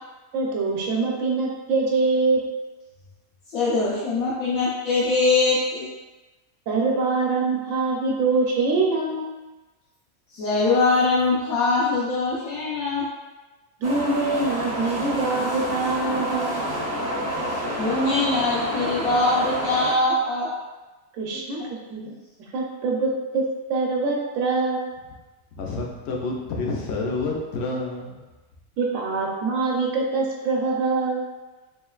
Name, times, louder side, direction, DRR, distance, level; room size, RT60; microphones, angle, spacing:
voice 1, 0.3-2.4 6.7-9.3 13.8-16.5 21.2-22.1 22.5-23.4 23.7-24.9 28.8-31.2, right 3 dB, 70° right, -1 dB, 1.0 m, -24 dB
voice 2, 3.5-5.9 10.3-13.0 17.8-20.5, left 3 dB, 85° left, -8 dB, 1.2 m, -22 dB
sound 1, 13.8-19.9, equal, 20° right, 0.4 m, -28 dB
voice 3, 25.5-28.2, left 3 dB, 65° left, 0 dB, 0.8 m, -29 dB
3.6 x 3.2 x 2.3 m, 1.1 s
omnidirectional pair, 1.4 m